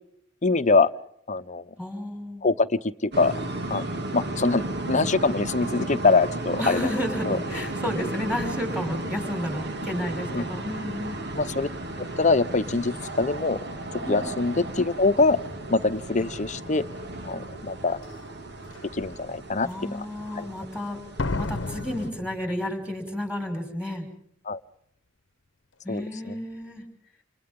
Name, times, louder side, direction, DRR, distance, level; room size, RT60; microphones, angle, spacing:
voice 1, 0.4-0.9 1.3-1.6 2.4-3.3 3.7-3.8 4.1-6.9 7.2-7.4 10.3-10.4 11.3-11.7 12.2-13.6 14.1-15.4 15.7-16.9 17.2-18.0 18.9-20.0 20.4-20.5 24.5-24.6 25.9-26.3, left 3 dB, 40° left, 12 dB, 0.9 m, -24 dB
voice 2, 1.8-2.5 6.6-11.2 14.0-14.3 19.6-21.0 21.4-24.1 25.8-26.9, left 1 dB, 5° right, 3 dB, 6.0 m, -32 dB
sound 1, 3.1-22.1, right 2 dB, 60° right, 2.6 m, -34 dB
Slam, 18.0-18.1 18.7-19.1 21.2-23.1 23.3-23.4, left 2 dB, 70° left, 1.0 m, -32 dB
29.5 x 28.5 x 3.8 m, 0.69 s
head